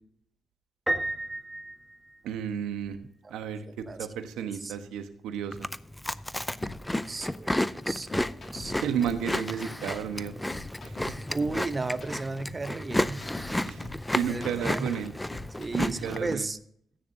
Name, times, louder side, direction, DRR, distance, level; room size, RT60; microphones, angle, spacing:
Piano, 0.9-2.7, right 1 dB, 5° right, 1.4 m, -33 dB
voice 1, 2.2-3.0 3.3-5.7 8.7-10.3 10.8-11.1 13.6-13.9 14.1-15.1 15.7-16.5, right 8 dB, 85° right, 8 dB, 1.1 m, -32 dB
voice 2, 3.7-4.1 4.6-4.8 7.1-8.7 11.3-13.2 14.3-14.9 15.6-16.6, right 3 dB, 30° right, 13 dB, 0.7 m, -34 dB
Chewing mastication, 5.5-16.3, left 1 dB, 10° left, 0.5 m, -32 dB
sound 1, 6.6-16.1, left 3 dB, 50° left, 2.2 m, -44 dB
14.0 x 9.3 x 2.7 m, 0.64 s
cardioid pair, 65°, 0 cm